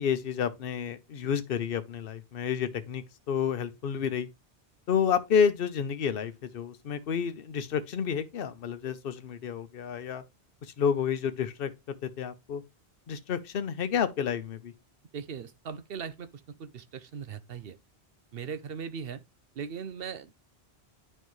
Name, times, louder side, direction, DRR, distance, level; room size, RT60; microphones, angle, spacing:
voice 1, 0.0-4.3 4.9-10.2 10.6-12.6 13.1-14.7, left 7 dB, 60° left, 1.0 m, -30 dB
voice 2, 15.1-16.3 16.6-17.8 18.3-19.2 19.6-20.3, right 6 dB, 60° right, 0.9 m, -39 dB
9.3 x 5.5 x 3.1 m
omnidirectional pair, 1.1 m